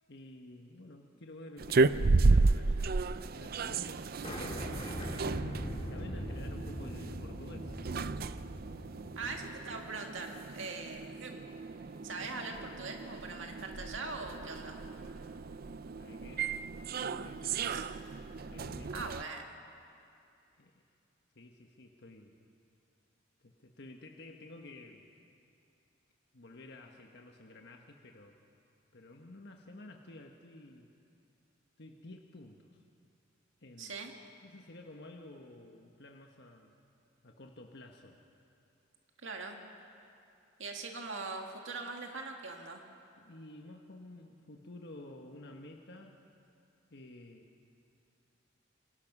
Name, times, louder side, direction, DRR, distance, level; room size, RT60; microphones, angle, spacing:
voice 1, 0.1-4.6 5.8-7.8 9.0-9.3 16.0-16.5 17.0-17.8 18.5-19.1 20.6-20.8 21.3-22.3 23.4-25.1 26.3-28.4 28.9-30.9 31.8-32.8 33.6-34.0 34.4-36.7 37.2-38.2 43.2-46.2 46.9-47.5, left 2 dB, 60° left, 2 dB, 1.4 m, -51 dB
sound 1, 1.6-19.2, right 3 dB, 50° right, 0.5 m, -33 dB
sound 2, 4.2-9.6, equal, 30° left, 2.4 m, -41 dB
voice 2, 9.2-11.4 12.0-14.8 17.7-17.9 18.9-19.4 33.8-34.1 39.2-39.6 40.6-42.8, right 3 dB, 75° right, 2 dB, 2.0 m, -41 dB
28.0 x 23.0 x 6.1 m, 2.6 s
head